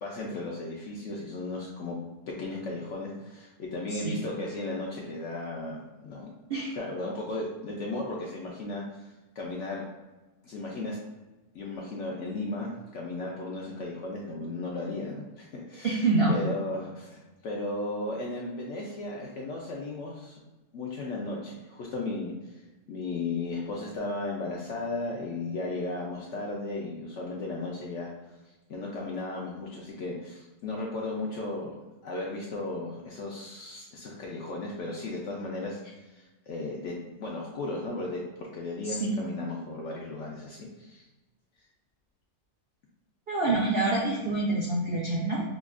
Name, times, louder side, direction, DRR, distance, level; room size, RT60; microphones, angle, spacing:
voice 1, 0.0-2.0 2.3-6.3 6.7-9.1 9.4-9.8 10.4-11.0 11.5-20.4 20.7-22.6 22.9-28.1 28.7-31.7 32.0-41.0, left 2 dB, 70° left, -2 dB, 0.7 m, -35 dB
voice 2, 15.8-16.4 38.8-39.1 43.3-45.4, right 2 dB, 70° right, -4 dB, 0.5 m, -26 dB
5.0 x 2.3 x 2.4 m, 1.1 s
omnidirectional pair, 1.7 m